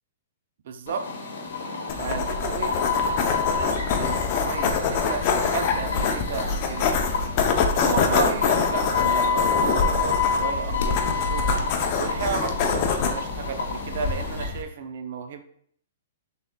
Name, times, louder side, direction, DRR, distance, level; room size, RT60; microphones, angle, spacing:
voice 1, 0.6-1.0 2.0-6.9 7.6-11.5 12.0-15.4, right 6 dB, 60° right, 7 dB, 0.4 m, -33 dB
sound 1, 0.9-14.4, left 5 dB, 80° left, 0.9 m, -29 dB
sound 2, 1.9-14.6, left 5 dB, 40° left, 0.5 m, -25 dB
6.0 x 3.4 x 2.2 m, 0.63 s
hypercardioid pair, 150°, 0 cm